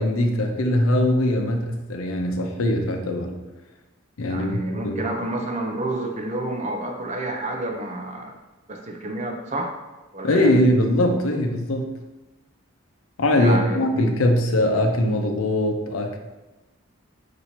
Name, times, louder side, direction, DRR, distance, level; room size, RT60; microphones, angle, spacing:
voice 1, 0.0-3.3 4.2-4.6 4.8-5.0 10.2-11.9 13.2-16.2, left 1 dB, 85° left, 4 dB, 0.6 m, -21 dB
voice 2, 4.3-8.3 8.7-9.7 10.1-10.5 13.4-13.8, right 1 dB, 35° right, 2 dB, 0.5 m, -29 dB
4.2 x 2.6 x 4.3 m, 1.1 s
head